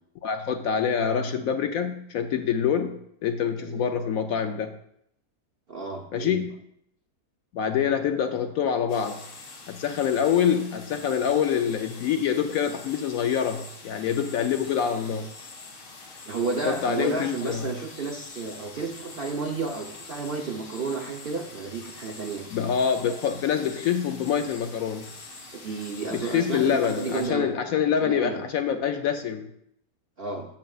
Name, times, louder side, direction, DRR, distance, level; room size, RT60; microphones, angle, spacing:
voice 1, 0.2-4.7 6.1-6.6 7.5-9.3 9.7-15.3 16.7-17.7 22.5-25.1 26.1-29.5, left 8 dB, 70° left, 7 dB, 0.9 m, -26 dB
voice 2, 3.6-3.9 5.7-6.4 16.3-22.4 25.5-27.6 28.0-28.4 30.2-30.5, right 4 dB, 50° right, 1 dB, 0.7 m, -32 dB
sound 1, 8.9-27.3, left 3 dB, 90° left, 2.0 m, -45 dB
13.5 x 6.2 x 2.4 m, 0.72 s
omnidirectional pair, 1.7 m